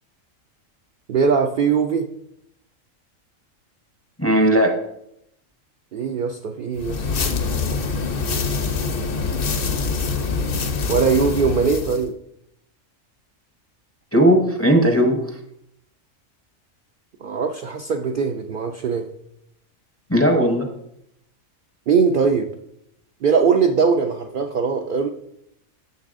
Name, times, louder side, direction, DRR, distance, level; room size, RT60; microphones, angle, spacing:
voice 1, 1.1-2.1 5.9-7.1 10.9-12.1 17.2-19.1 21.9-22.5 23.2-25.1, right 5 dB, 65° right, 5 dB, 0.5 m, -20 dB
voice 2, 4.2-4.7 14.1-15.3 20.1-20.7, equal, 15° left, 3 dB, 0.5 m, -17 dB
sound 1, 6.8-12.0, left 4 dB, 50° left, 0.8 m, -24 dB
9.4 x 6.8 x 2.5 m, 0.76 s
omnidirectional pair, 1.4 m